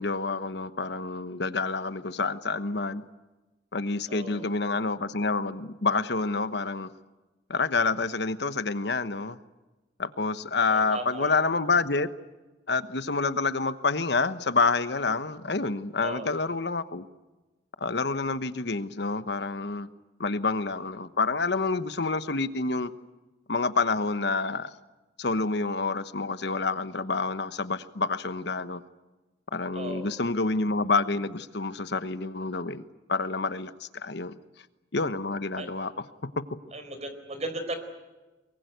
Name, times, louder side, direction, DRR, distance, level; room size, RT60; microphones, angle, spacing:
voice 1, 0.0-3.0 3.7-6.9 7.5-9.4 10.0-12.1 12.7-17.0 17.8-19.9 20.2-22.9 23.5-24.7 25.2-28.8 29.5-32.8 33.1-34.4 34.9-35.9, left 3 dB, 65° left, 12 dB, 1.1 m, -28 dB
voice 2, 4.1-4.5 10.7-11.4 16.0-16.3 29.7-30.1 35.6-35.7 36.7-37.8, right 2 dB, 40° right, 8 dB, 4.6 m, -36 dB
23.5 x 23.0 x 9.3 m, 1.1 s
head